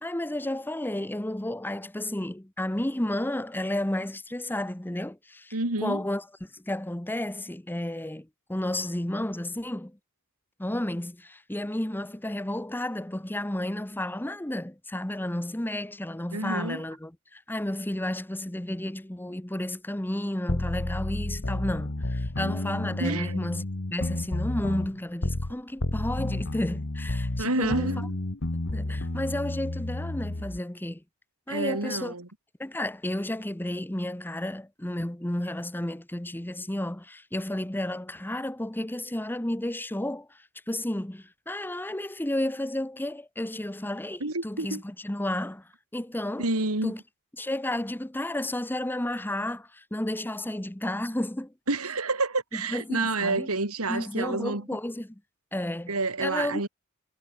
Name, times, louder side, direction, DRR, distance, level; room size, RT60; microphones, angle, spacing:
voice 1, 0.0-5.5 5.8-10.0 10.6-27.9 28.7-31.0 31.5-32.1 32.6-46.5 46.8-47.0 47.4-51.5 52.5-53.5 53.9-55.2 55.5-55.9 56.2-56.7, left 1 dB, 10° left, 0.9 m, -32 dB
voice 2, 5.5-6.0 16.3-16.8 23.0-23.4 27.4-28.2 31.5-32.3 44.2-44.8 46.4-46.9 51.7-54.6 55.9-56.7, right 3 dB, 75° right, 3.1 m, -29 dB
sound 1, 20.5-25.5 25.8-30.6, left 1 dB, 60° left, 1.5 m, -31 dB
head